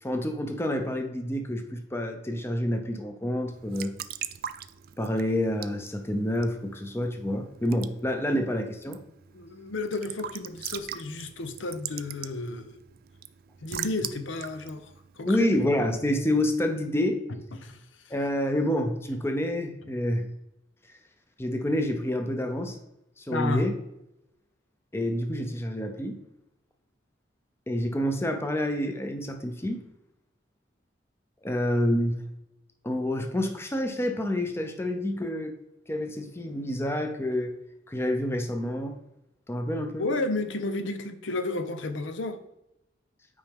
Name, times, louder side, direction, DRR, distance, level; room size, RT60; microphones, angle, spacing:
voice 1, 0.0-4.0 5.0-9.0 15.3-17.2 18.1-20.3 21.4-22.8 23.2-23.7 24.9-26.2 27.7-29.8 31.4-32.2 32.8-35.6 35.9-37.5 37.9-39.0 39.5-40.1, left 1 dB, 15° left, 5 dB, 0.6 m, -28 dB
Raindrop / Drip / Trickle dribble, 3.5-16.0, right 11 dB, 50° right, 0.4 m, -42 dB
voice 2, 9.3-12.8 13.6-15.5 17.3-18.1 23.3-23.7 40.0-42.4, left 3 dB, 80° left, 9 dB, 0.7 m, -32 dB
8.6 x 5.0 x 3.5 m, 0.88 s
head